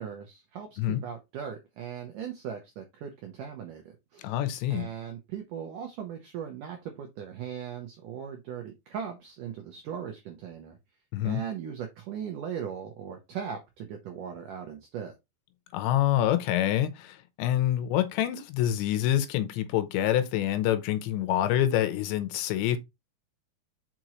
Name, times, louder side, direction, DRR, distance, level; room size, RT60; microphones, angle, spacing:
voice 1, 0.0-4.4 4.7-10.8 11.2-15.1, right 8 dB, 85° right, 1.8 m, -38 dB
voice 2, 4.2-4.9 11.1-11.4 15.7-22.8, left 12 dB, 90° left, 3.1 m, -26 dB
6.0 x 5.2 x 3.0 m
omnidirectional pair, 5.0 m